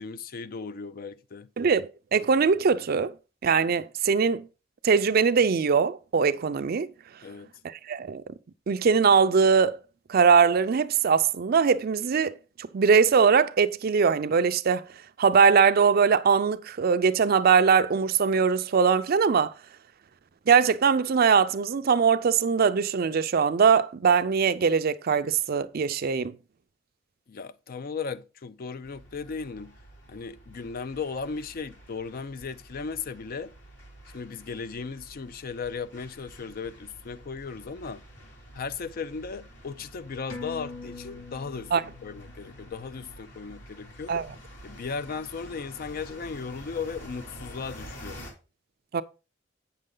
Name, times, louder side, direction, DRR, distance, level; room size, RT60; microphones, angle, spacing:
voice 1, 0.0-1.5 7.2-7.5 27.3-29.7 30.1-33.5 34.1-38.0 38.5-44.1 44.6-48.2, left 5 dB, 50° left, 0.5 m, -36 dB
voice 2, 1.6-3.1 3.4-4.4 4.8-6.9 7.6-8.2 8.7-9.8 10.1-12.3 12.7-14.9 15.2-19.5 20.5-26.3 41.7-41.8 44.1-44.3 48.9-49.0, right 6 dB, 50° right, 0.4 m, -21 dB
sound 1, 28.8-48.3, equal, 70° left, 2.7 m, -48 dB
sound 2, 40.3-45.2 45.6-45.7, left 3 dB, 90° left, 1.5 m, -45 dB
8.3 x 6.5 x 3.8 m
head